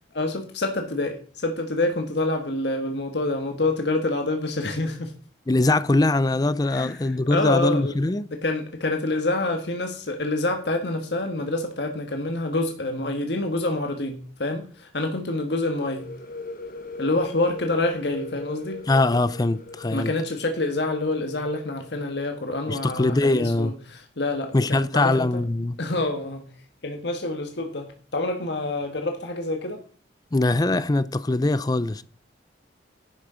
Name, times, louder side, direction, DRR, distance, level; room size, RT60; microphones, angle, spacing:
voice 1, 0.1-5.1 6.7-7.9 8.4-16.1 17.0-18.8 19.9-25.4 25.8-26.4 26.8-29.8, left 2 dB, 65° left, 1.5 m, -27 dB
voice 2, 5.5-8.3 18.9-20.1 22.7-23.8 24.5-25.8 30.3-32.0, left 2 dB, 20° left, 0.4 m, -22 dB
sound 1, 15.7-23.3, left 2 dB, 50° left, 1.0 m, -40 dB
11.0 x 6.4 x 5.0 m
head